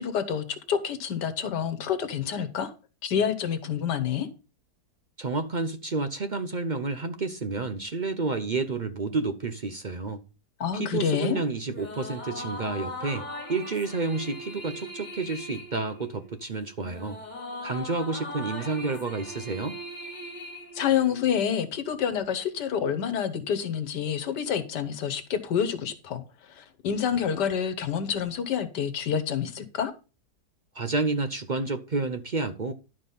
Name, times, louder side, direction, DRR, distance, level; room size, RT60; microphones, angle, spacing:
voice 1, 0.0-2.7 3.0-4.3 10.6-11.4 20.7-26.2 26.5-29.9, left 8 dB, 80° left, 1.6 m, -28 dB
voice 2, 5.2-10.2 10.7-17.2 17.6-19.8 30.7-32.7, right 3 dB, 50° right, 0.5 m, -30 dB
sound 1, 11.6-21.4, left 1 dB, 25° left, 2.3 m, -39 dB
12.0 x 5.0 x 5.4 m
omnidirectional pair, 1.8 m